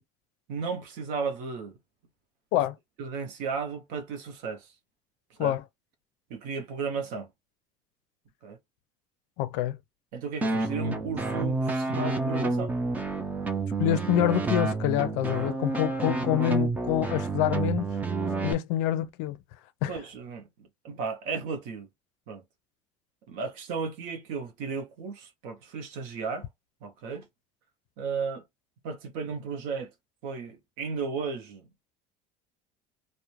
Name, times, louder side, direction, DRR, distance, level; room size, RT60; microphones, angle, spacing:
voice 1, 0.5-1.8 3.0-4.7 5.3-5.5 6.3-7.3 8.4-8.6 10.1-12.7 19.9-21.9 22.3-22.4 23.3-26.5 26.8-27.3 28.0-28.4 28.8-29.9 30.2-31.7, right 5 dB, 60° right, 0.7 m, -34 dB
voice 2, 9.4-9.8 13.8-18.0 18.4-19.4 19.8-20.0, left 12 dB, 80° left, 0.4 m, -26 dB
sound 1, 10.4-18.5, right 3 dB, 10° right, 0.3 m, -29 dB
2.4 x 2.1 x 3.0 m
cardioid pair, 175°, 16 cm